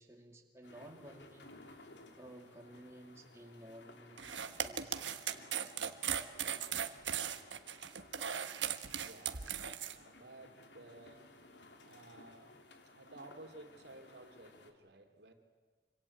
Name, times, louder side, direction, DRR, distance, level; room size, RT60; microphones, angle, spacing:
voice 1, 0.0-1.9 2.2-5.0, right 1 dB, 15° right, 1 dB, 2.4 m, -55 dB
sound 1, 0.6-14.7, left 2 dB, 80° left, 3.0 m, -59 dB
sound 2, 4.2-9.9, right 8 dB, 90° right, 1.4 m, -38 dB
voice 2, 9.0-15.3, right 2 dB, 70° right, 5 dB, 3.1 m, -56 dB
26.0 x 25.5 x 8.7 m, 1.5 s
head